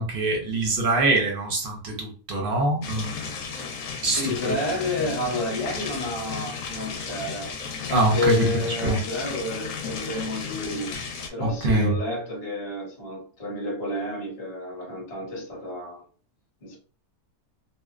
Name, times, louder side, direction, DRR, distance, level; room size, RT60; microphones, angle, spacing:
voice 1, 0.0-3.2 4.0-4.6 7.9-8.4 8.8-9.0 11.4-11.9, right 2 dB, 55° right, 0.6 m, -24 dB
sound 1, 2.8-11.3, left 5 dB, 70° left, 1.0 m, -34 dB
voice 2, 4.0-11.0 11.3-16.0 16.6-16.8, left 1 dB, 30° left, 0.8 m, -30 dB
2.8 x 2.0 x 2.3 m
omnidirectional pair, 1.6 m